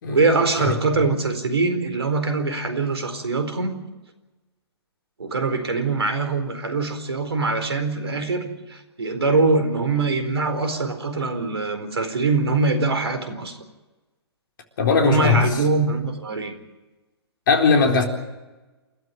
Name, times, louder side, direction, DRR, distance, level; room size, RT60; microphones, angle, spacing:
voice 1, 0.1-3.8 5.2-13.6 15.0-16.5, right 3 dB, 70° right, 4.3 m, -23 dB
voice 2, 14.8-15.5 17.5-18.0, left 5 dB, 50° left, 4.0 m, -19 dB
28.5 x 13.0 x 9.5 m
figure-of-eight pair, 125°, 14 cm